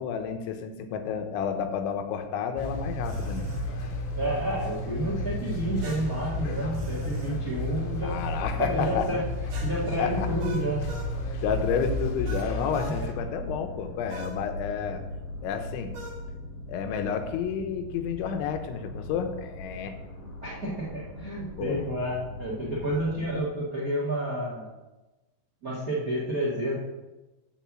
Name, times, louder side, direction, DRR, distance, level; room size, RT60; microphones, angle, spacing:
voice 1, 0.0-3.5 8.0-9.2 10.0-10.3 11.4-15.0 15.4-15.9 16.7-19.9 21.6-21.9, left 7 dB, 90° left, 6 dB, 3.3 m, -30 dB
sound 1, 2.6-13.1, left 1 dB, 70° left, 2.0 m, -32 dB
sound 2, 3.0-3.7 5.8-7.4 9.5-11.1 12.2-13.0 14.1-14.4 15.9-16.2, right 2 dB, 55° right, 2.0 m, -41 dB
voice 2, 4.1-8.2 8.6-9.2 9.6-10.9 20.4-24.7 25.6-26.7, right 1 dB, 85° right, -5 dB, 0.7 m, -30 dB
sound 3, 4.6-23.4, left 1 dB, 55° left, 1.4 m, -41 dB
9.0 x 4.5 x 7.4 m, 1.1 s
omnidirectional pair, 5.2 m